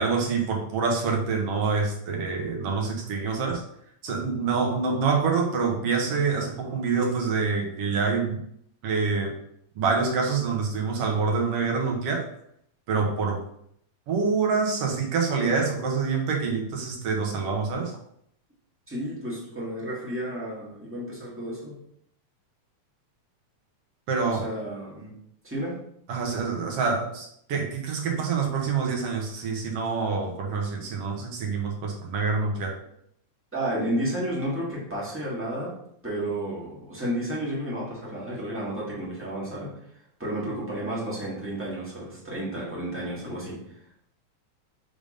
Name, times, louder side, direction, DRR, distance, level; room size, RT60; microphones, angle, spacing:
voice 1, 0.0-3.6 4.0-8.4 8.8-9.3 9.8-12.3 12.9-13.4 14.1-17.9 24.1-24.4 26.1-32.8, right 4 dB, 60° right, 1 dB, 1.9 m, -26 dB
voice 2, 18.9-21.8 24.2-25.1 25.4-25.8 33.5-35.7 36.0-39.7 40.2-43.8, right 1 dB, 5° right, -7 dB, 1.4 m, -32 dB
5.2 x 3.6 x 5.0 m, 0.71 s
omnidirectional pair, 3.4 m